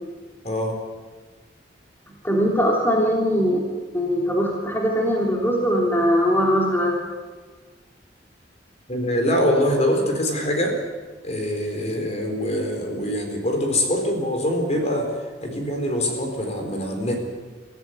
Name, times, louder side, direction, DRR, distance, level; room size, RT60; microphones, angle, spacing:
voice 1, 0.4-0.8 8.9-10.8 11.2-17.3, left 1 dB, 40° left, 3 dB, 4.2 m, -24 dB
voice 2, 2.2-3.6 3.9-7.0, equal, 10° left, -2 dB, 3.2 m, -21 dB
23.5 x 15.0 x 9.5 m, 1.4 s
head